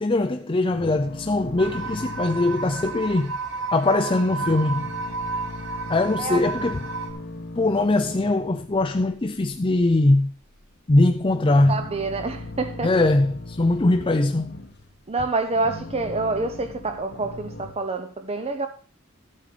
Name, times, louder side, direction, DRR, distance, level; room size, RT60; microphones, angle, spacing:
voice 1, 0.0-3.3 3.7-4.9 5.9-6.8 7.6-10.3 10.9-11.8 12.8-14.6, left 2 dB, 25° left, 0.6 m, -21 dB
sound 1, 0.7-3.9 4.2-8.8 9.1-10.2 10.4-10.6 11.0-15.0 15.4-17.7, left 2 dB, 55° left, 1.8 m, -39 dB
sound 2, 1.6-7.1, right 4 dB, 70° right, 2.9 m, -32 dB
voice 2, 11.7-13.1 15.1-18.7, right 3 dB, 30° right, 0.8 m, -27 dB
14.0 x 8.6 x 5.0 m
head